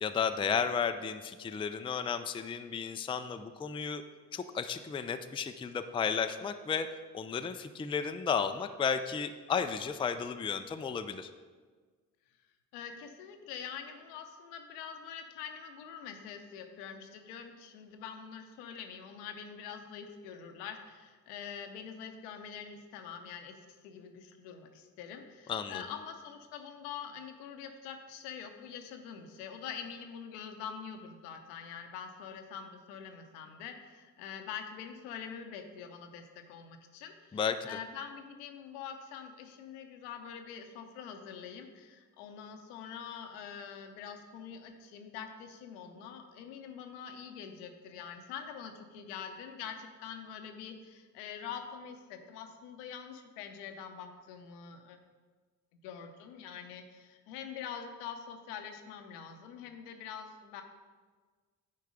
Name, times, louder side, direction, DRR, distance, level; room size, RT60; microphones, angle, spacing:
voice 1, 0.0-4.0 4.3-6.9 7.1-11.3 25.5-25.8 37.3-37.8, left 6 dB, 10° left, 9 dB, 0.4 m, -33 dB
voice 2, 12.7-23.6 23.8-55.0 55.8-60.6, left 7 dB, 75° left, 5 dB, 0.8 m, -45 dB
9.5 x 4.6 x 5.0 m, 1.5 s
hypercardioid pair, 40°, 46 cm